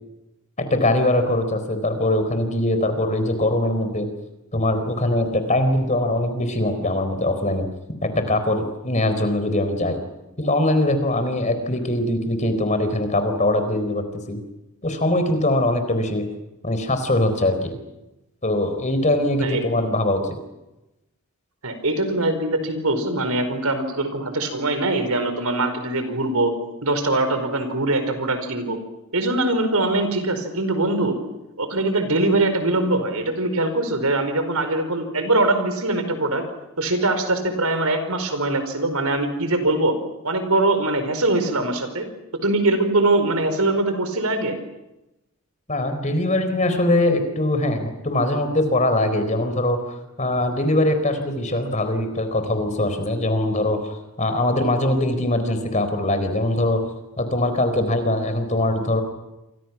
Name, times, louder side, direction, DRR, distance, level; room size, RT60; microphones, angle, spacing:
voice 1, 0.6-4.1 4.5-7.7 8.0-10.0 10.4-14.4 14.8-16.2 16.6-17.8 18.4-20.3 45.7-49.8 50.2-56.8 57.2-59.0, left 1 dB, 35° left, 8 dB, 4.2 m, -22 dB
voice 2, 21.6-26.5 26.8-28.8 29.1-31.2 31.6-36.4 36.8-40.0 40.2-42.1 42.4-44.6, right 2 dB, 80° right, 8 dB, 4.9 m, -22 dB
28.5 x 26.5 x 6.1 m, 0.95 s
head